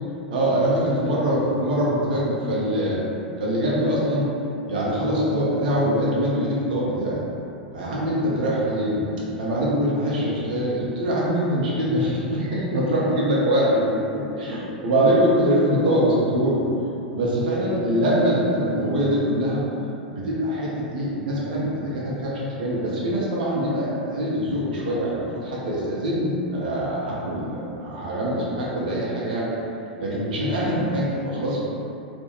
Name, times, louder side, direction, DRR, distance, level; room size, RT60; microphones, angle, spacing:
voice 1, 0.3-3.1 3.4-4.3 4.7-7.2 7.7-9.1 9.4-13.9 14.1-16.6 17.1-19.6 20.1-29.5 30.0-31.6, equal, 60° right, -6 dB, 0.5 m, -23 dB
2.4 x 2.1 x 2.9 m, 2.8 s
figure-of-eight pair, 95°, 5 cm